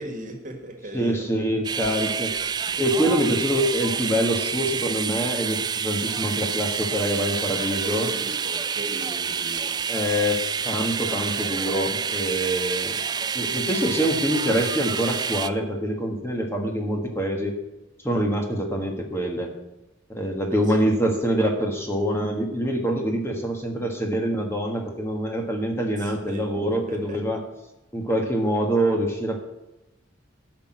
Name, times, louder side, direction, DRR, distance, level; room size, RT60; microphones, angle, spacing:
voice 1, 0.0-1.5 7.6-9.8 20.7-20.9 26.0-27.3, right 1 dB, 40° right, 4 dB, 1.8 m, -37 dB
voice 2, 0.9-2.3 2.8-8.1 9.9-13.0 13.3-17.6 18.0-19.5 20.1-27.4 27.9-29.4, equal, 15° left, 2 dB, 1.5 m, -25 dB
sound 1, 1.6-15.5, right 6 dB, 20° right, 0.3 m, -28 dB
12.0 x 6.0 x 9.2 m, 0.96 s
head